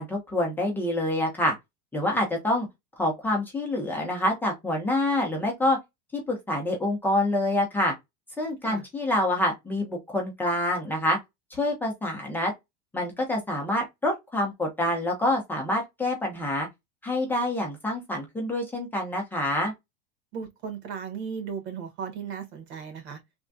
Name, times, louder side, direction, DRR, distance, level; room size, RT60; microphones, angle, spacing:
voice 1, 0.0-1.5 1.9-2.7 3.0-5.8 6.1-7.9 8.4-11.2 11.5-12.5 12.9-16.7 17.0-19.7, left 1 dB, 5° left, 0.7 m, -26 dB
voice 2, 20.3-23.2, right 6 dB, 90° right, 1.5 m, -36 dB
3.4 x 2.2 x 2.6 m
supercardioid pair, 170°, 32 cm